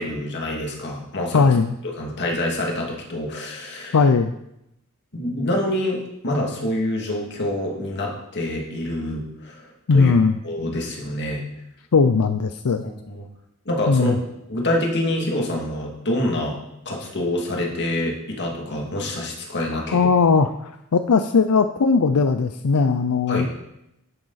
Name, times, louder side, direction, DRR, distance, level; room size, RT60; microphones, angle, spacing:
voice 1, 0.0-1.5 1.8-4.0 5.1-10.1 10.4-11.5 13.1-13.2 13.7-16.6 16.9-20.1 23.3-23.5, left 1 dB, 55° left, -1 dB, 2.4 m, -26 dB
voice 2, 1.3-1.7 3.9-4.3 9.9-10.4 11.9-12.8 13.9-14.2 19.9-23.5, left 4 dB, 90° left, 10 dB, 0.5 m, -18 dB
11.0 x 8.8 x 4.1 m, 0.85 s
head